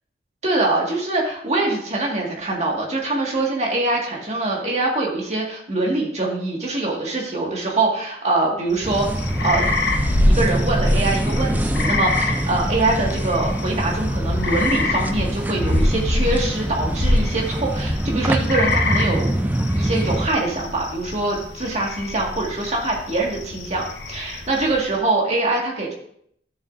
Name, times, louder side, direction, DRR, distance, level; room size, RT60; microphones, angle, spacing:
voice 1, 0.4-9.7 10.3-19.4 19.8-25.9, right 2 dB, 40° right, -1 dB, 1.9 m, -23 dB
sound 1, 8.7-24.9, left 1 dB, 65° left, 1.0 m, -25 dB
sound 2, 8.8-20.3, right 1 dB, 10° right, 0.3 m, -25 dB
13.0 x 7.2 x 2.6 m, 0.68 s
head